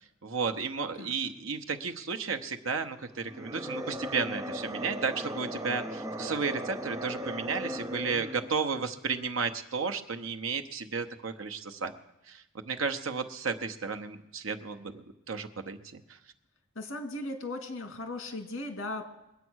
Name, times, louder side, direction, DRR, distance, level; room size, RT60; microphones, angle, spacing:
voice 1, 0.2-11.9 12.3-16.2, right 5 dB, 75° right, 8 dB, 0.9 m, -33 dB
sound 1, 3.2-8.5, equal, 15° right, 0.6 m, -37 dB
voice 2, 16.8-19.0, left 2 dB, 70° left, 5 dB, 2.1 m, -37 dB
21.5 x 8.3 x 6.3 m, 0.89 s
head